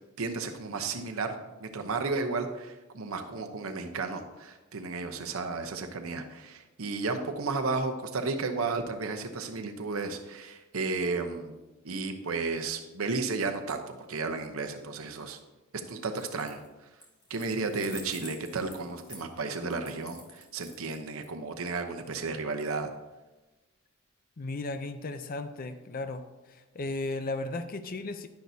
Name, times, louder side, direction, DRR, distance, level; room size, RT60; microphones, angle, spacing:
voice 1, 0.2-11.5 11.8-15.4 15.9-16.6 17.3-22.9, right 3 dB, 85° right, 6 dB, 0.8 m, -33 dB
sound 1, 16.1-16.7 17.0-21.2, left 2 dB, 20° left, 2.3 m, -48 dB
voice 2, 24.4-26.2 26.5-28.3, left 2 dB, 45° left, 9 dB, 0.5 m, -35 dB
10.5 x 10.5 x 2.8 m, 1.1 s
head